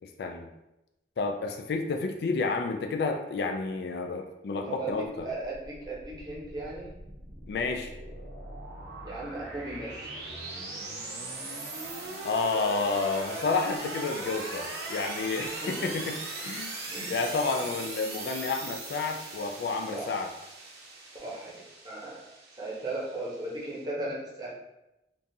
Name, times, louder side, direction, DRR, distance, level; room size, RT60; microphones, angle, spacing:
voice 1, 0.0-0.5 1.2-5.3 7.5-7.9 12.2-16.2 16.4-16.7 17.1-20.3, left 4 dB, 65° left, 4 dB, 0.3 m, -30 dB
voice 2, 4.6-6.9 9.0-10.1 15.4-15.9 16.9-17.2 19.9-20.1 21.2-21.5 21.8-22.3 22.6-24.5, right 2 dB, 25° right, -5 dB, 0.8 m, -37 dB
sound 1, 5.4-23.8, right 2 dB, 70° right, 0.7 m, -40 dB
3.7 x 2.4 x 2.7 m, 0.93 s
head